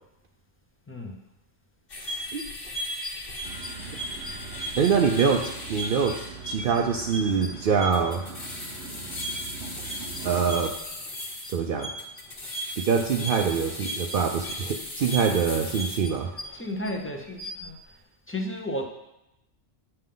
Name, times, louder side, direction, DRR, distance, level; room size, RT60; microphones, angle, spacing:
voice 1, 0.9-1.2 13.0-13.2 16.5-17.8 18.3-18.8, left 1 dB, 15° left, 2 dB, 0.7 m, -33 dB
sound 1, 1.9-16.9 17.3-17.7, equal, 60° left, 1.4 m, -36 dB
sound 2, 3.4-10.6, right 5 dB, 80° right, 1.1 m, -42 dB
voice 2, 4.8-8.2 10.2-10.7 11.5-11.9 12.8-16.3, right 6 dB, 65° right, 3 dB, 0.7 m, -24 dB
8.5 x 5.6 x 3.8 m, 0.89 s
omnidirectional pair, 1.1 m